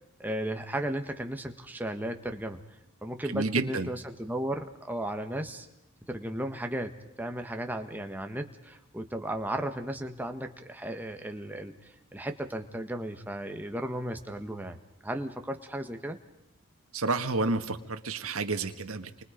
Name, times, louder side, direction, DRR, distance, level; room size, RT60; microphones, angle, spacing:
voice 1, 0.2-2.6 3.0-5.7 6.1-14.8 15.0-16.2, right 1 dB, 10° right, 5 dB, 1.5 m, -35 dB
voice 2, 3.3-3.9 16.9-19.2, right 3 dB, 80° right, 7 dB, 1.7 m, -30 dB
29.0 x 24.5 x 5.2 m, 0.85 s
head